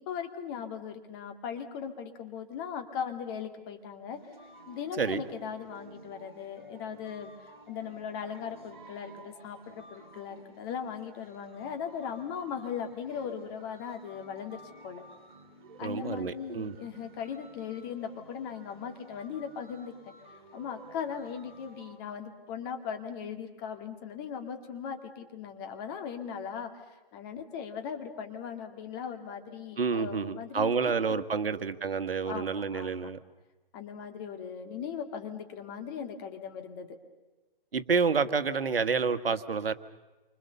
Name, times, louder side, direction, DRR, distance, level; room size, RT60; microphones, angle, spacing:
voice 1, 0.1-4.2 4.7-15.0 15.8-20.1 20.5-31.5 32.2-33.1 33.7-37.0, left 7 dB, 25° left, 5 dB, 2.1 m, -39 dB
sound 1, 4.1-22.0, right 2 dB, 55° right, 4.7 m, -54 dB
voice 2, 15.8-16.8 29.8-33.2 37.7-39.7, right 5 dB, 80° right, 11 dB, 1.6 m, -29 dB
28.5 x 25.5 x 6.9 m, 1.1 s
hypercardioid pair, 160°, 29 cm